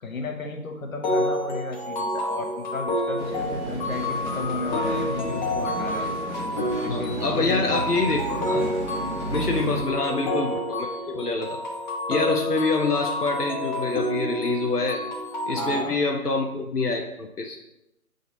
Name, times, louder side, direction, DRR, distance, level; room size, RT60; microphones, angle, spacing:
voice 1, 0.0-6.1 6.8-7.8 9.3-9.6 15.5-16.0, left 3 dB, 60° left, 3 dB, 1.2 m, -34 dB
sound 1, 1.0-15.8, left 1 dB, 30° left, 1.0 m, -29 dB
sound 2, 3.2-9.8, right 2 dB, 50° right, 1.3 m, -33 dB
voice 2, 6.9-8.7 9.3-11.6 12.1-15.0 15.5-17.6, left 3 dB, 85° left, 1 dB, 0.9 m, -26 dB
7.0 x 4.0 x 3.9 m, 0.89 s
figure-of-eight pair, 140°, 45 cm